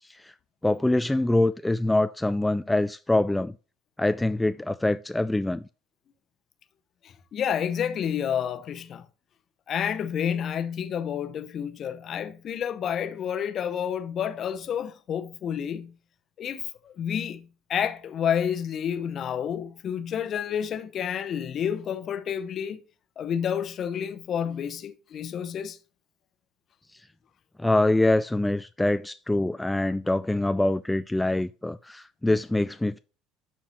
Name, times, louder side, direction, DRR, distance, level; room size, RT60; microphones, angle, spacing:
voice 1, 0.6-3.5 4.0-5.6 27.6-33.0, left 2 dB, 10° left, 0.3 m, -24 dB
voice 2, 7.0-9.1 9.7-15.9 16.4-22.8 23.2-25.8, left 8 dB, 45° left, 0.9 m, -30 dB
12.0 x 4.4 x 3.0 m
figure-of-eight pair, 60°, 0 cm